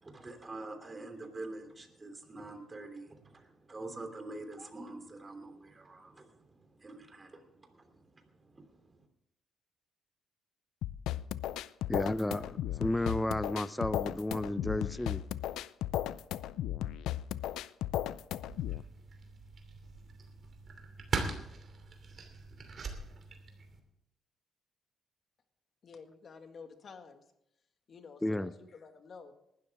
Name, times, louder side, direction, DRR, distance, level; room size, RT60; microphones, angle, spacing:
voice 1, 0.0-6.3 6.8-7.4 8.5-8.6, right 2 dB, 25° right, 5 dB, 3.1 m, -45 dB
sound 1, 10.8-18.8, left 12 dB, 85° left, 0.4 m, -35 dB
voice 2, 11.9-12.5 12.8-15.2 28.2-28.5, left 1 dB, 10° left, 15 dB, 0.6 m, -32 dB
sound 2, 18.4-23.8, right 4 dB, 45° right, 2.8 m, -41 dB
voice 3, 25.8-27.2 27.9-29.5, left 5 dB, 50° left, 6 dB, 1.8 m, -51 dB
19.5 x 12.5 x 3.6 m, 0.80 s
cardioid pair, 90°, 0 cm